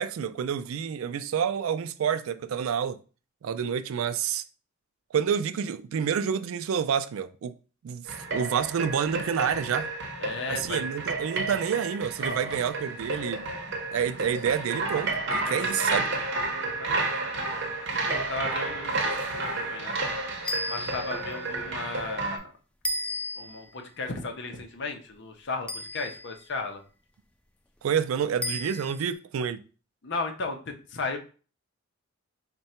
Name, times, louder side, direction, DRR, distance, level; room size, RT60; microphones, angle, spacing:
voice 1, 0.0-3.0 3.4-4.4 5.1-7.5 7.8-9.9 10.5-13.5 13.9-16.1 27.8-29.6, right 7 dB, 75° right, 0.3 m, -28 dB
sound 1, 8.1-22.4, right 3 dB, 60° right, 0.8 m, -31 dB
voice 2, 10.2-10.8 12.2-12.6 15.4-16.2 16.6-17.2 17.9-20.0 20.7-22.5 23.3-26.8 30.0-31.2, left 3 dB, 55° left, 0.6 m, -35 dB
sound 2, 20.4-21.3 22.8-23.7 25.7-26.4 28.4-29.1, left 1 dB, 5° left, 0.3 m, -34 dB
3.7 x 2.2 x 4.2 m
head